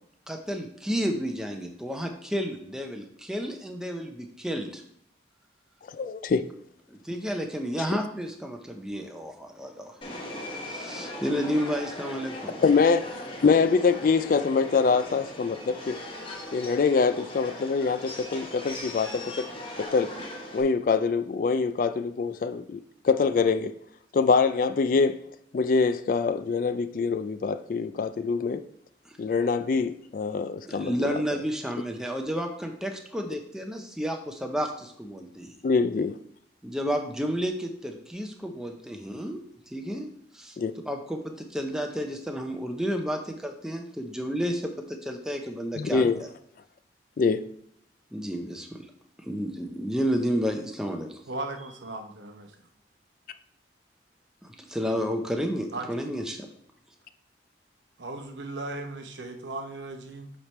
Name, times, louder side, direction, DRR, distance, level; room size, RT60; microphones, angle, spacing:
voice 1, 0.3-4.8 6.9-10.0 10.6-12.6 29.0-29.2 30.7-35.6 36.6-39.4 39.7-40.1 40.3-40.6 40.8-46.3 48.1-48.8 49.2-51.2 54.4-56.5, equal, 5° right, 0.6 m, -31 dB
voice 2, 5.9-6.5 12.6-16.0 16.5-19.4 19.9-20.1 20.5-23.7 24.1-25.2 25.5-28.6 29.2-31.1 35.6-36.1 40.6-40.7 45.8-46.2 47.2-47.4, left 4 dB, 45° left, 0.3 m, -24 dB
Subway metro underground, 10.0-20.6, left 1 dB, 30° left, 1.0 m, -39 dB
voice 3, 51.3-52.5 55.7-56.1 58.0-60.3, right 2 dB, 75° right, 0.8 m, -37 dB
7.8 x 3.4 x 4.3 m
head